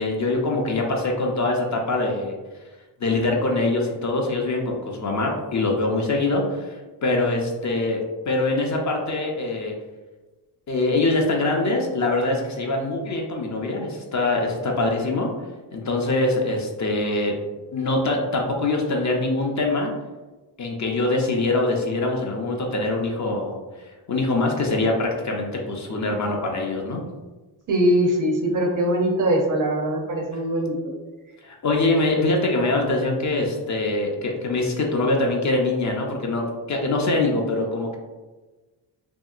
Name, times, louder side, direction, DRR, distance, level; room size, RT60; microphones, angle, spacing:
voice 1, 0.0-2.3 3.0-6.7 7.0-8.0 8.3-9.7 10.7-15.3 15.7-17.3 17.7-19.9 20.6-23.6 24.1-27.0 31.4-38.0, left 2 dB, 40° left, 0 dB, 0.5 m, -23 dB
voice 2, 27.7-30.8, right 1 dB, 45° right, 2 dB, 0.5 m, -21 dB
2.8 x 2.8 x 2.3 m, 1.2 s
cardioid pair, 100°, 43 cm